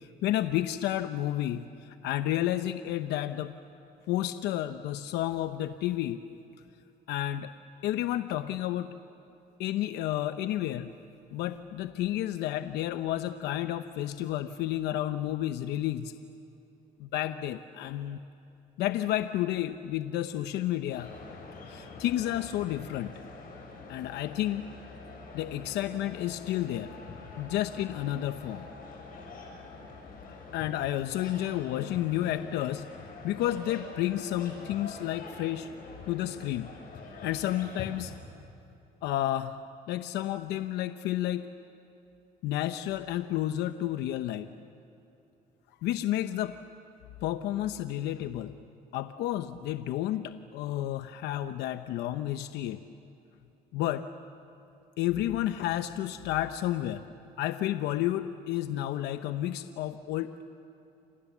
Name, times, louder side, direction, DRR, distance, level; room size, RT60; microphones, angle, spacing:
voice 1, 0.0-3.5 4.1-6.2 7.1-7.5 7.8-8.9 9.6-10.9 11.3-16.1 17.0-18.2 18.8-21.1 21.7-23.1 23.9-24.6 25.3-26.9 27.4-28.7 30.5-32.9 33.2-35.7 36.1-36.7 37.2-38.1 39.0-39.6 39.9-41.5 42.4-44.5 45.8-46.5 47.2-48.5 48.9-52.8 53.7-54.1 55.0-57.0 57.4-60.4, left 13 dB, 85° left, 10 dB, 0.8 m, -31 dB
sound 1, 20.9-38.1, left 3 dB, 60° left, 7.5 m, -45 dB
29.5 x 27.0 x 7.3 m, 2.8 s
cardioid pair, 110°, 17 cm